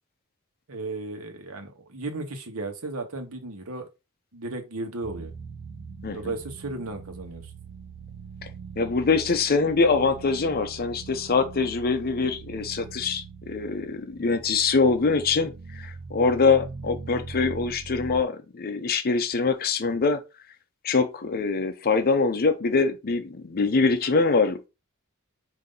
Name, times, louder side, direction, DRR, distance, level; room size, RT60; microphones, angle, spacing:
voice 1, 0.7-3.9 4.3-5.3 6.1-7.5, right 2 dB, 80° right, 1.1 m, -35 dB
sound 1, 5.0-18.2, right 5 dB, 60° right, 0.5 m, -42 dB
voice 2, 6.0-6.3 8.8-20.2 20.8-24.7, left 4 dB, 45° left, 0.5 m, -24 dB
5.2 x 2.7 x 3.8 m
head